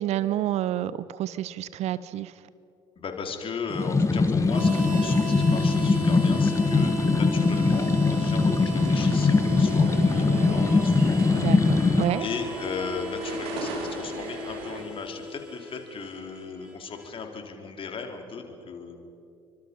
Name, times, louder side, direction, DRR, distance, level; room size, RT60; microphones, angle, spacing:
voice 1, 0.0-2.3 11.4-12.3, right 12 dB, 55° right, 17 dB, 0.8 m, -29 dB
voice 2, 3.0-11.2 12.2-19.0, left 5 dB, 40° left, 4 dB, 4.1 m, -36 dB
sound 1, 3.7-12.0, left 4 dB, 20° left, 1.7 m, -22 dB
Harmonica, 4.4-17.1, right 3 dB, 10° right, 6.8 m, -37 dB
Oyster Card Gates London Underground, 8.8-14.8, right 3 dB, 75° right, 3.8 m, -38 dB
29.0 x 25.0 x 5.5 m, 2.6 s
figure-of-eight pair, 55°, 13 cm